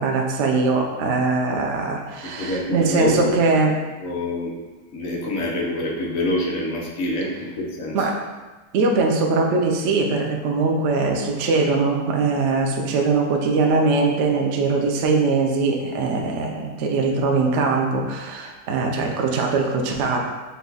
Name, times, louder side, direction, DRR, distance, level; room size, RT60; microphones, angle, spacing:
voice 1, 0.0-3.7 7.9-8.1 8.7-20.3, right 3 dB, 90° right, 1 dB, 0.6 m, -21 dB
voice 2, 2.2-3.4 4.0-4.5 4.9-8.1, left 1 dB, 55° left, -3 dB, 1.0 m, -26 dB
5.6 x 2.4 x 3.9 m, 1.3 s
omnidirectional pair, 2.0 m